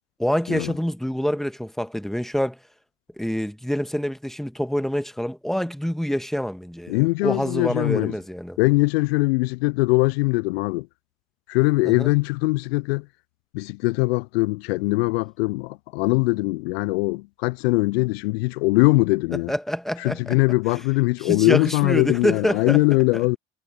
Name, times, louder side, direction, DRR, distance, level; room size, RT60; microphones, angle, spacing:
voice 1, 0.2-2.6 3.2-8.6 11.8-12.1 19.5-20.4 20.7-20.8 21.2-22.8 23.1-23.4, equal, ahead, 1.7 m, -26 dB
voice 2, 6.9-8.1 8.6-10.9 11.5-13.1 13.5-19.5 20.0-23.4, left 25 dB, 70° left, 0.5 m, -21 dB
hypercardioid pair, 60°, 32 cm